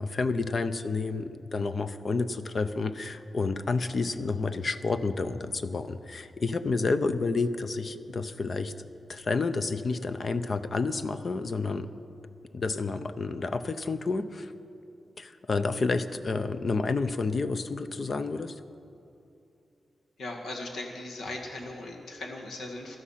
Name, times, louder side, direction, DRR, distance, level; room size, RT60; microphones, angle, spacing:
voice 1, 0.0-8.7 9.1-11.9 12.5-14.5 15.2-18.6, left 3 dB, 40° left, 11 dB, 0.6 m, -30 dB
voice 2, 20.2-23.0, left 2 dB, 75° left, 1 dB, 1.8 m, -38 dB
16.0 x 12.5 x 5.8 m, 2.7 s
wide cardioid pair, 145°, 0 cm